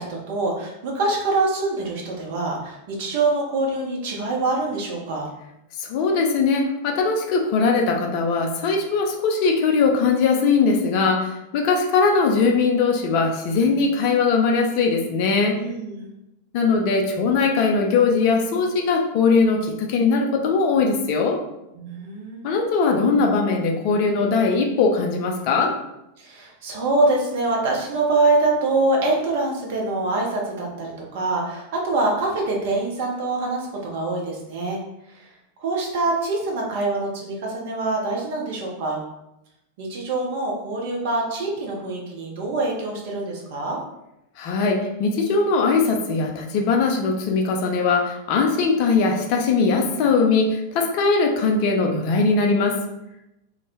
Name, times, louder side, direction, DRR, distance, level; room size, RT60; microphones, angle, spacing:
voice 1, 0.0-5.3 15.6-16.1 21.7-22.5 26.2-34.8 35.1-35.3 35.6-39.0 39.8-43.8, right 2 dB, 50° right, -1 dB, 0.6 m, -24 dB
voice 2, 5.8-15.6 16.5-21.4 22.4-25.7 44.4-52.8, left 4 dB, 45° left, 2 dB, 0.4 m, -20 dB
2.1 x 2.0 x 3.0 m, 0.89 s
figure-of-eight pair, 90°, 0 cm